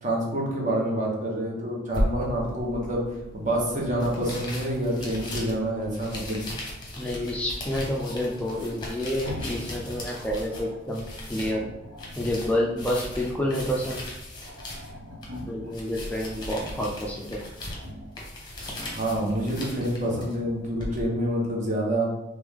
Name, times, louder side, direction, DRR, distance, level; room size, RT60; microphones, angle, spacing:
voice 1, 0.0-6.5 18.9-22.1, right 1 dB, 40° right, -2 dB, 1.0 m, -27 dB
sound 1, 1.9-21.0, left 1 dB, 20° left, 0.8 m, -37 dB
Growling, 4.2-5.5 7.9-9.7 10.0-10.9 11.5-12.4 12.8-13.8 14.1-14.2 14.4-15.7 16.2-17.0 17.7-18.1 18.5-19.7 20.0-20.3, equal, 80° right, 1.0 m, -43 dB
voice 2, 7.0-11.0 11.3-11.7 12.2-14.0 15.5-17.4, left 1 dB, 5° left, -3 dB, 0.3 m, -29 dB
3.3 x 3.0 x 3.5 m, 0.95 s
head